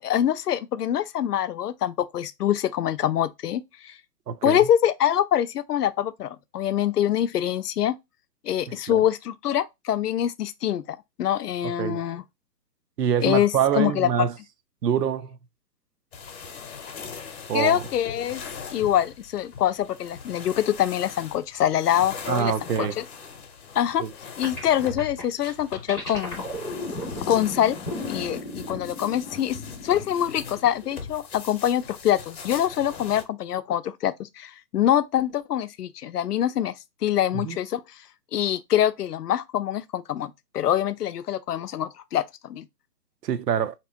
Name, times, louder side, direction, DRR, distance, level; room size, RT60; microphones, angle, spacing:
voice 1, 0.0-4.0 4.4-8.0 8.4-12.2 13.2-14.3 17.5-18.4 18.7-23.0 23.7-24.0 24.4-26.5 27.3-27.8 28.1-29.6 29.8-36.7 37.0-37.8 38.3-42.7, left 11 dB, 70° left, 0.6 m, -25 dB
voice 2, 4.3-4.6 8.7-9.0 11.6-12.0 13.0-14.3 14.8-15.4 17.5-17.8 22.3-23.0 24.0-24.1 37.3-37.6 43.2-43.7, right 8 dB, 75° right, 0.6 m, -25 dB
sound 1, 16.1-33.2, left 6 dB, 40° left, 0.8 m, -41 dB
sound 2, 24.4-30.9, left 2 dB, 5° right, 0.5 m, -35 dB
3.4 x 2.9 x 2.8 m
hypercardioid pair, 150°, 49 cm